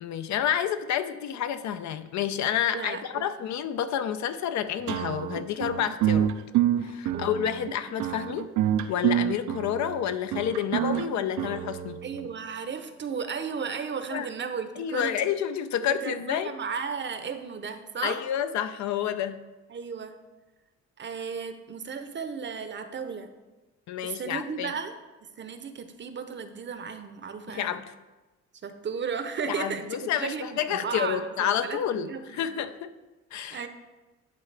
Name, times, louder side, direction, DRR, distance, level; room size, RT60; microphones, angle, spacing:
voice 1, 0.0-6.3 6.8-8.5 8.9-12.0 14.1-14.3 14.8-16.5 18.0-19.4 23.9-24.7 27.5-27.8 29.5-32.9 33.3-33.6, left 9 dB, 65° left, 11 dB, 0.5 m, -29 dB
voice 2, 2.7-3.3 7.1-7.3 12.0-15.3 15.8-18.2 19.7-20.1 21.0-23.3 24.0-24.9 25.4-27.8 28.6-32.6 33.5-33.7, right 6 dB, 40° right, 9 dB, 0.7 m, -35 dB
sound 1, 4.9-12.3, right 11 dB, 85° right, 0.5 m, -27 dB
11.0 x 3.7 x 3.3 m, 1.2 s
cardioid pair, 80°, 30 cm